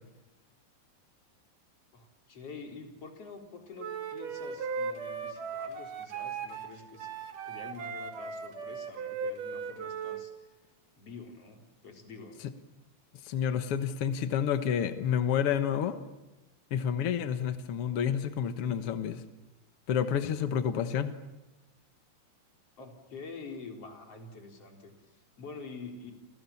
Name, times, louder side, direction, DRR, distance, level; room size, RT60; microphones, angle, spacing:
voice 1, 1.9-7.1 7.4-10.6 11.0-12.4 22.8-26.1, left 4 dB, 40° left, 3 dB, 4.4 m, -47 dB
Wind instrument woodwind instrument, 3.8-10.2, right 5 dB, 55° right, 3.6 m, -37 dB
voice 2, 13.2-16.0 16.7-19.2 19.9-21.1, left 8 dB, 80° left, 9 dB, 1.2 m, -29 dB
30.0 x 27.0 x 7.2 m, 1.0 s
omnidirectional pair, 4.6 m